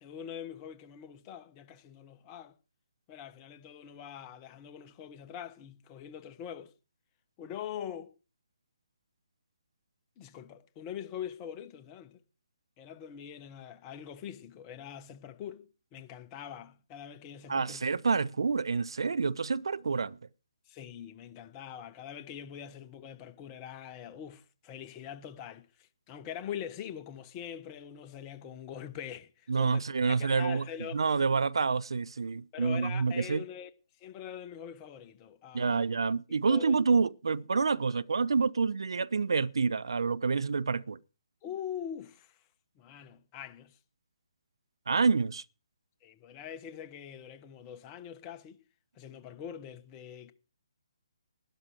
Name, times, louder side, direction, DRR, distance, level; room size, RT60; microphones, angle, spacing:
voice 1, 0.0-2.6 3.1-6.7 7.4-8.1 10.2-12.2 12.8-17.8 20.7-29.8 30.1-31.0 32.5-33.7 34.0-35.8 36.5-36.7 41.4-42.4 42.8-43.8 46.0-48.6 48.9-50.3, left 9 dB, 25° left, 1.0 m, -43 dB
voice 2, 17.5-20.2 29.5-30.7 30.9-33.4 35.5-41.0 44.9-45.4, right 4 dB, 65° right, 0.5 m, -28 dB
12.0 x 11.0 x 4.7 m
figure-of-eight pair, 140°, 3 cm